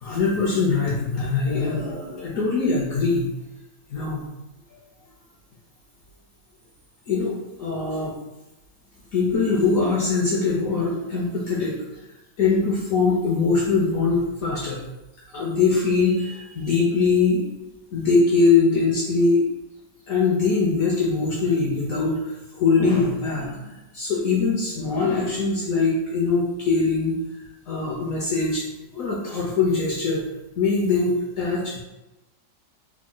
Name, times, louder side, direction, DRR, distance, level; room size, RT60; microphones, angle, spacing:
voice 1, 0.0-3.3 3.9-4.2 7.1-8.2 9.1-11.8 12.4-14.8 15.3-17.5 17.9-19.4 20.1-27.2 27.7-28.6 28.9-30.2 30.6-31.8, left 4 dB, 65° left, -4 dB, 0.8 m, -22 dB
3.5 x 2.2 x 3.7 m, 0.99 s
omnidirectional pair, 1.9 m